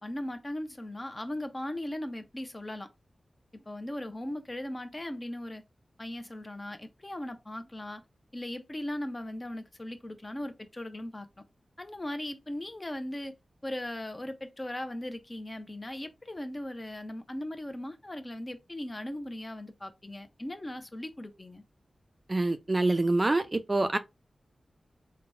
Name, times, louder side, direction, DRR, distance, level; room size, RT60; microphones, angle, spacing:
voice 1, 0.0-2.9 3.5-5.6 6.0-8.0 8.3-11.3 11.8-13.3 13.6-21.6, left 1 dB, 25° left, 0.8 m, -38 dB
voice 2, 22.3-24.0, right 2 dB, 30° right, 0.5 m, -26 dB
3.9 x 2.3 x 4.3 m
wide cardioid pair, 80°, 0 cm